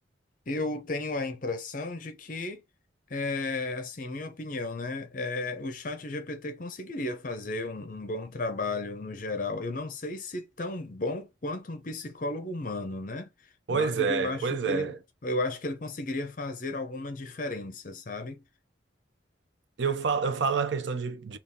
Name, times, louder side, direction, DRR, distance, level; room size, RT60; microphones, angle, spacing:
voice 1, 0.5-2.6 3.1-13.3 13.7-14.9 15.2-18.4, left 2 dB, 45° left, 0.6 m, -34 dB
voice 2, 13.7-15.0 19.8-21.4, right 5 dB, 70° right, 0.5 m, -28 dB
3.9 x 2.4 x 3.5 m
head